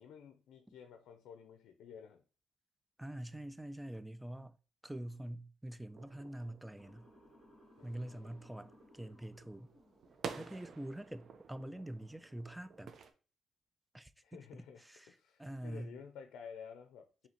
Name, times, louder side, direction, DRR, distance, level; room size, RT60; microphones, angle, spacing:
voice 1, 0.0-2.2 7.8-8.5 14.2-17.3, left 7 dB, 80° left, 0.4 m, -53 dB
voice 2, 3.0-4.6 4.8-7.1 7.8-9.7 10.4-12.9 13.9-15.1 15.4-16.0, right 1 dB, 5° right, 0.3 m, -45 dB
sound 1, 6.0-13.1, right 5 dB, 55° right, 0.5 m, -51 dB
Motor vehicle (road) / Siren, 6.8-10.9, left 1 dB, 15° left, 2.1 m, -63 dB
4.9 x 2.8 x 2.9 m
cardioid pair, 90°, 0 cm